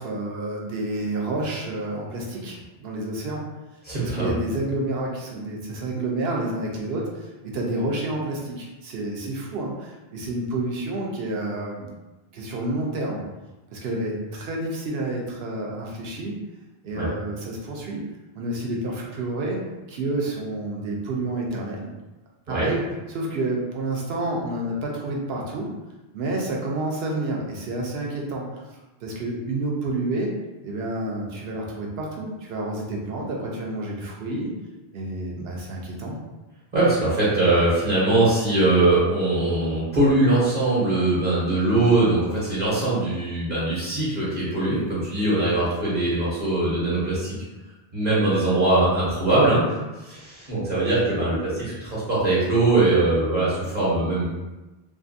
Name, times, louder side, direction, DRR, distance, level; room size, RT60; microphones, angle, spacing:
voice 1, 0.0-3.4 4.0-11.9 12.3-13.2 13.7-16.4 16.8-18.1 18.3-19.6 19.9-21.9 22.5-25.7 26.1-28.6 29.0-30.4 30.6-34.5 34.9-36.2, right 2 dB, 75° right, -1 dB, 0.8 m, -29 dB
voice 2, 3.8-4.4 16.9-17.1 22.5-22.7 36.7-47.3 47.9-54.3, right 2 dB, 45° right, -9 dB, 0.9 m, -21 dB
2.6 x 2.5 x 2.5 m, 1.1 s
omnidirectional pair, 1.0 m